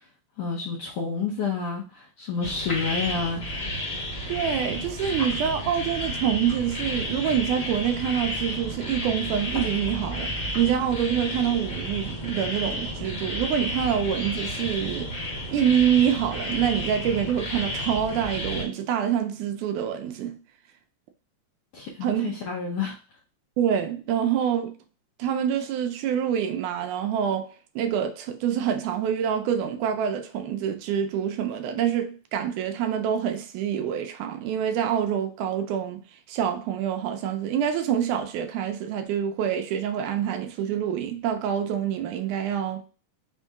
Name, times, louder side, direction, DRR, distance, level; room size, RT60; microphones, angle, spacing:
voice 1, 0.4-3.4 21.7-23.0, left 5 dB, 75° left, 1.4 m, -29 dB
sound 1, 2.4-18.6, left 1 dB, 45° left, 1.0 m, -32 dB
voice 2, 4.3-15.2 15.5-20.4 22.0-22.3 23.6-24.7 25.2-42.8, right 9 dB, 80° right, 1.9 m, -26 dB
5.2 x 2.7 x 3.4 m
omnidirectional pair, 3.7 m